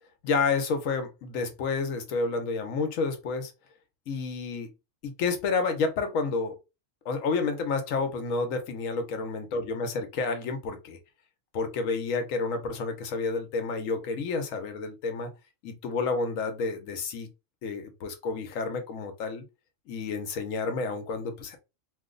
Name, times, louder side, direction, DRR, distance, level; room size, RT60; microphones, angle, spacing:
voice 1, 0.2-3.5 4.1-4.7 5.0-6.6 7.0-11.0 11.5-15.3 15.6-17.3 17.6-19.4 19.9-21.6, left 4 dB, 80° left, 1.1 m, -30 dB
3.0 x 2.0 x 3.7 m
omnidirectional pair, 1.4 m